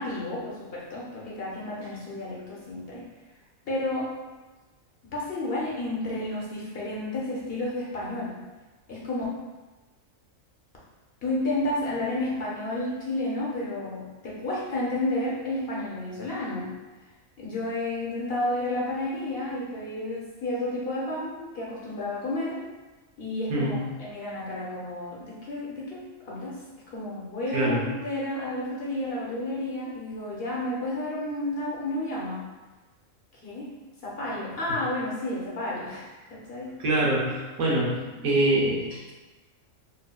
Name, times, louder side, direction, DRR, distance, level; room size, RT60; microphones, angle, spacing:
voice 1, 0.0-3.0 3.6-4.1 5.1-8.4 8.9-9.2 11.2-16.7 17.4-22.6 23.2-26.6 26.9-32.4 33.4-33.7 34.0-36.8, left 1 dB, 55° left, -5 dB, 0.9 m, -31 dB
voice 2, 36.8-39.1, right 1 dB, 90° right, -4 dB, 1.3 m, -25 dB
4.1 x 2.6 x 2.2 m, 1.2 s
omnidirectional pair, 1.4 m